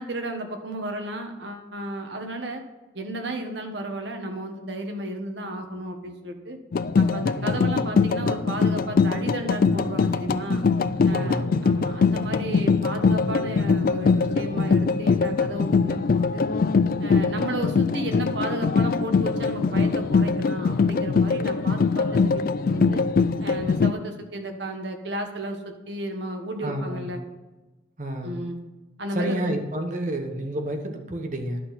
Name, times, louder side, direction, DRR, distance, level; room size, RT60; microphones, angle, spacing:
voice 1, 0.0-2.6 2.9-6.6 7.0-10.6 11.1-16.4 17.0-22.4 22.7-23.0 23.4-27.2 28.2-28.6 29.0-29.4, right 1 dB, 65° right, 4 dB, 1.3 m, -33 dB
sound 1, 6.7-23.9, left 4 dB, 50° left, 0.3 m, -22 dB
voice 2, 7.3-7.8 11.1-11.6 26.6-27.1 28.0-28.4 29.1-31.6, right 1 dB, 40° right, 4 dB, 1.1 m, -30 dB
11.0 x 6.1 x 4.2 m, 1.2 s
head